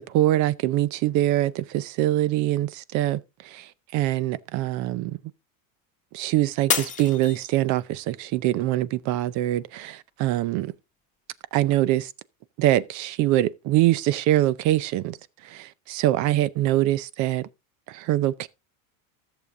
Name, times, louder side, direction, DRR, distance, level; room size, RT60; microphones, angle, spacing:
voice 1, 0.1-5.2 6.1-10.7 11.5-12.1 12.6-15.2 15.4-17.5 17.9-18.5, right 14 dB, 45° right, 0.6 m, -24 dB
Shatter, 6.7-8.0 8.5-9.0 9.5-9.6, left 7 dB, 20° left, 1.5 m, -29 dB
13.5 x 6.9 x 3.6 m
supercardioid pair, 150°, 40 cm